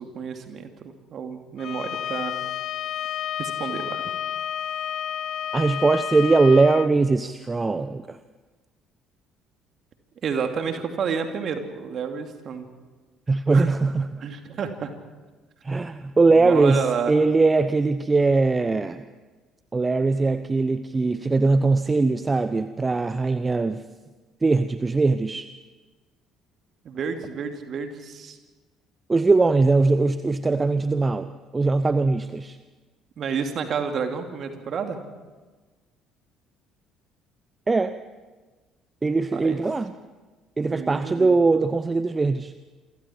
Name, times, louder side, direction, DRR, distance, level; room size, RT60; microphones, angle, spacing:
voice 1, 0.0-2.4 3.4-4.0 10.2-12.7 13.5-13.7 14.2-14.9 16.4-17.1 26.8-28.4 33.2-35.0 39.3-39.6 40.7-41.4, right 6 dB, 45° right, 5 dB, 2.8 m, -30 dB
Bowed string instrument, 1.6-6.9, left 10 dB, 50° left, 0.7 m, -30 dB
voice 2, 5.5-8.2 13.3-14.2 15.6-19.0 19.7-23.8 24.4-25.5 29.1-32.6 37.7-37.9 39.0-39.9 40.6-42.5, right 3 dB, 25° right, 12 dB, 0.8 m, -21 dB
28.0 x 25.0 x 4.6 m, 1.3 s
figure-of-eight pair, 50°, 0 cm